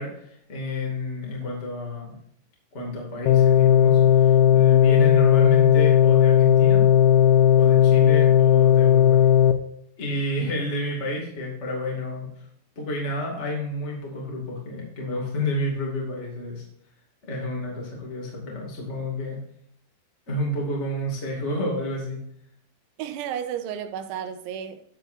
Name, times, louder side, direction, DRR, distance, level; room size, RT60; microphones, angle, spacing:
voice 1, 0.0-2.1 2.7-6.8 7.6-9.3 10.0-12.4 12.7-16.6 17.2-19.4 20.3-22.2, left 1 dB, 35° left, 1.1 m, -30 dB
sound 1, 3.3-9.5, left 9 dB, 90° left, 2.2 m, -16 dB
voice 2, 23.0-24.9, right 9 dB, 90° right, 3.2 m, -32 dB
12.0 x 8.1 x 2.7 m
omnidirectional pair, 5.5 m